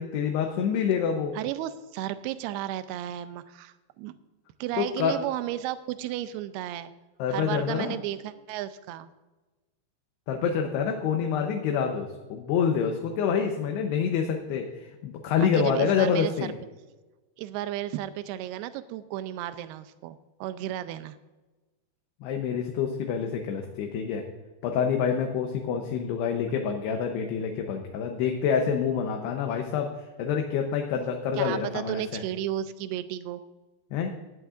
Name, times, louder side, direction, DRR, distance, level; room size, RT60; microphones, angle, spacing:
voice 1, 0.0-1.3 4.8-5.1 7.2-8.0 10.3-16.5 22.2-24.2 24.6-29.9 30.2-32.2 33.9-34.1, left 7 dB, 75° left, 3 dB, 2.8 m, -27 dB
voice 2, 1.4-4.1 4.6-6.9 7.3-9.1 15.4-16.3 17.4-21.2 31.4-33.4, right 13 dB, 80° right, 12 dB, 2.4 m, -33 dB
17.0 x 11.0 x 2.5 m, 1.2 s
omnidirectional pair, 5.1 m